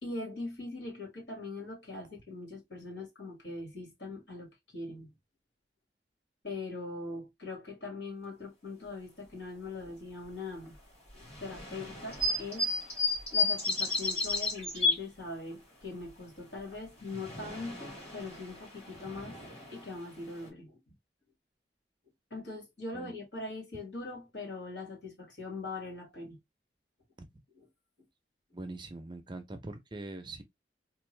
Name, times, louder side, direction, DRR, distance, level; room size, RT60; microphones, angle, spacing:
voice 1, 0.0-5.1 6.4-10.8 11.1-12.7 13.3-19.4 19.7-20.8 22.3-26.4 27.5-27.7, left 3 dB, 75° left, 2.2 m, -41 dB
sound 1, 11.2-15.0 16.7-20.5, left 3 dB, 35° left, 2.3 m, -33 dB
voice 2, 28.5-30.4, right 2 dB, 25° right, 0.6 m, -42 dB
3.5 x 2.6 x 3.1 m
head